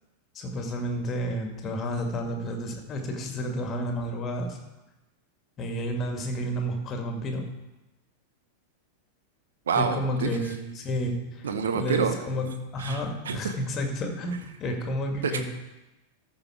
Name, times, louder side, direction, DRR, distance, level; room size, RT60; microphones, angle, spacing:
voice 1, 0.4-4.6 5.6-7.5 9.7-11.4 11.7-12.5 12.7-15.4, equal, 25° left, 3 dB, 1.9 m, -31 dB
voice 2, 9.7-10.3 11.4-12.2 12.8-13.5 15.2-15.4, right 5 dB, 65° right, 8 dB, 0.9 m, -27 dB
13.5 x 5.6 x 4.7 m, 1.0 s
figure-of-eight pair, 90°, 0 cm